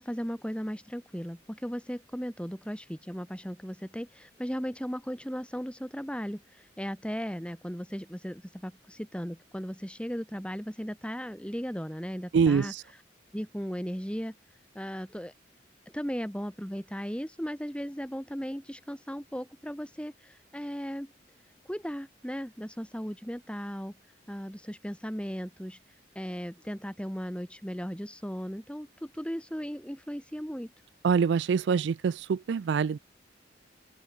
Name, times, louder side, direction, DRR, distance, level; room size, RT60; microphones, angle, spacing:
voice 1, 0.0-13.0 13.3-14.3 14.8-15.3 15.9-21.1 21.7-23.9 24.3-25.8 26.2-30.7, equal, 5° left, 5.3 m, -36 dB
voice 2, 12.3-12.8 31.0-33.0, right 6 dB, 65° right, 0.3 m, -25 dB
head